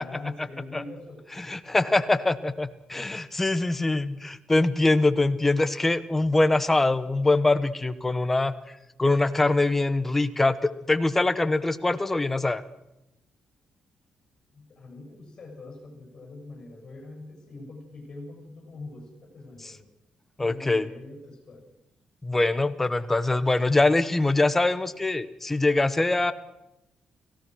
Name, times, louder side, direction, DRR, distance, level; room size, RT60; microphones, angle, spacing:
voice 1, 0.0-1.2 14.5-19.9 20.4-21.7, left 2 dB, 35° left, 2 dB, 7.3 m, -43 dB
voice 2, 1.4-8.5 9.0-12.6 19.6-19.7 20.4-20.9 22.2-26.3, left 2 dB, 10° left, 12 dB, 1.1 m, -23 dB
30.0 x 17.0 x 6.3 m, 0.89 s
cardioid pair, 175°, 2 cm